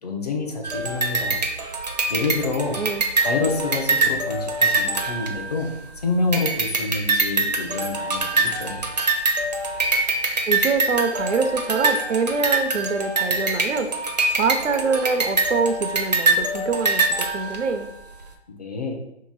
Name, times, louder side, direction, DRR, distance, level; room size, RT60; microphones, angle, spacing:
voice 1, 0.0-1.4 2.1-2.8 3.2-5.7 6.0-8.8 18.5-19.0, left 3 dB, 35° left, 2 dB, 0.5 m, -27 dB
sound 1, 0.6-5.9 6.3-17.9, right 3 dB, 40° right, 0.4 m, -24 dB
voice 2, 2.7-3.0 10.5-13.9 14.3-17.9, right 4 dB, 90° right, 8 dB, 0.6 m, -24 dB
2.9 x 2.7 x 3.9 m, 0.82 s
figure-of-eight pair, 160°, 35 cm